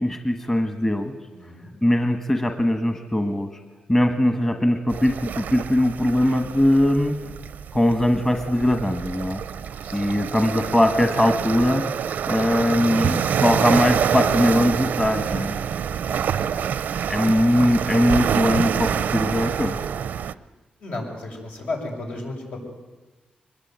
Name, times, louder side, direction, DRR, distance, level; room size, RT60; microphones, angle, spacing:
voice 1, 0.0-1.1 1.8-3.5 3.9-7.1 7.7-9.4 9.9-11.8 12.3-15.6 17.1-19.7, left 1 dB, 15° left, 6 dB, 1.4 m, -21 dB
voice 2, 1.3-1.7 9.8-10.2 13.3-13.5 16.1-16.6 18.5-18.7 20.8-22.6, left 2 dB, 70° left, 0 dB, 7.2 m, -34 dB
sound 1, 4.9-20.3, right 8 dB, 90° right, 0.7 m, -26 dB
23.5 x 21.0 x 9.5 m, 1.2 s
wide cardioid pair, 150°, 3 cm